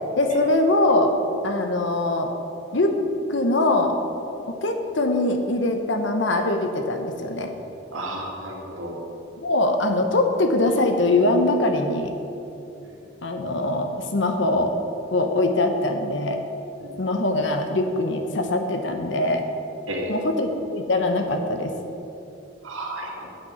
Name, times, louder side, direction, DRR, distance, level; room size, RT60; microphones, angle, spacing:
voice 1, 0.2-1.1 1.4-2.3 2.7-2.9 3.3-4.0 4.6-7.5 9.4-12.1 13.2-14.7 15.1-16.4 17.0-19.4 20.1-21.7, left 2 dB, 70° left, 5 dB, 0.8 m, -22 dB
voice 2, 7.9-9.0 12.8-13.0 16.8-16.9 19.9-20.1 22.6-23.3, right 1 dB, 90° right, -1 dB, 1.9 m, -32 dB
8.4 x 5.8 x 7.8 m, 2.8 s
head